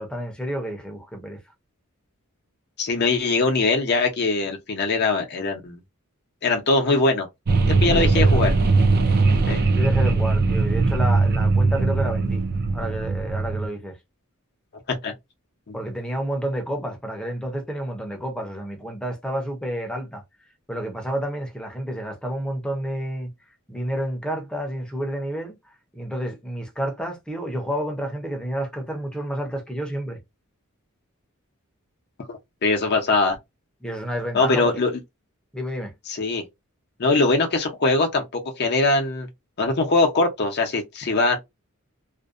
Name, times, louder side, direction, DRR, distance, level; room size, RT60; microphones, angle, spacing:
voice 1, 0.0-1.4 7.9-8.4 9.7-12.4 12.7-14.0 15.7-20.2 20.7-23.3 23.7-25.6 25.9-30.2 33.8-34.7 35.5-35.9, right 1 dB, 5° left, 0.6 m, -30 dB
voice 2, 2.8-5.8 6.4-7.3 7.8-8.5 9.5-9.6 15.0-15.1 15.7-15.8 32.3-33.4 34.3-34.9 36.1-36.4 37.0-39.3 39.6-41.4, left 3 dB, 50° left, 0.6 m, -22 dB
sound 1, 7.5-13.7, right 3 dB, 45° right, 0.4 m, -20 dB
2.5 x 2.1 x 2.4 m
head